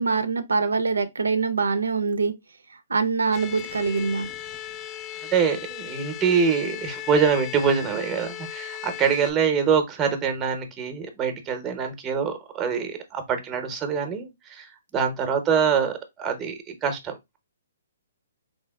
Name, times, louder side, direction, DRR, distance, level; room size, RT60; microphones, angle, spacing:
voice 1, 0.0-2.3 2.9-4.3, right 4 dB, 85° right, 0.4 m, -24 dB
sound 1, 3.3-9.3, left 12 dB, 25° left, 0.3 m, -37 dB
voice 2, 5.3-17.4, right 6 dB, 20° right, 0.7 m, -25 dB
3.4 x 2.7 x 2.2 m
hypercardioid pair, 135°, 0 cm